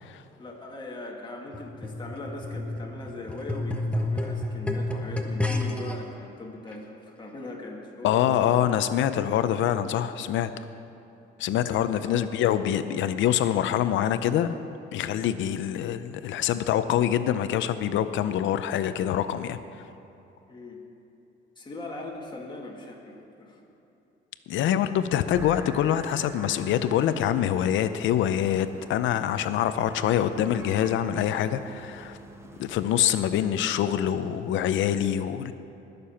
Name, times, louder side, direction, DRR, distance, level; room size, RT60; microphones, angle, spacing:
voice 1, 0.4-8.7 12.0-12.3 20.5-20.8 21.6-23.6, left 2 dB, 25° left, -1 dB, 2.0 m, -40 dB
sound 1, 1.5-5.9 6.7-6.8, left 2 dB, 5° left, 1.1 m, -30 dB
voice 2, 8.0-10.5 11.4-14.6 14.9-19.6 24.5-32.2 32.6-35.5, left 10 dB, 85° left, 11 dB, 0.6 m, -25 dB
sound 2, 25.3-33.2, right 1 dB, 15° right, 1.1 m, -46 dB
20.5 x 6.8 x 5.7 m, 2.8 s
cardioid pair, 125°, 19 cm